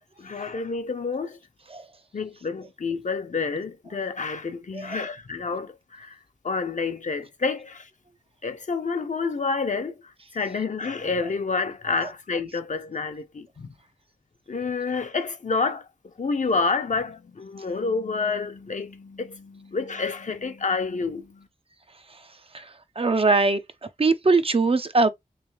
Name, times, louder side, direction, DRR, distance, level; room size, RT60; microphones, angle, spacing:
voice 1, 0.2-1.4 2.1-6.2 6.4-7.9 8.4-13.7 14.5-15.9 16.2-21.5, left 4 dB, 60° left, 0.8 m, -29 dB
voice 2, 22.5-25.1, right 3 dB, 40° right, 0.6 m, -22 dB
3.4 x 3.3 x 3.2 m
wide cardioid pair, 80°, 14 cm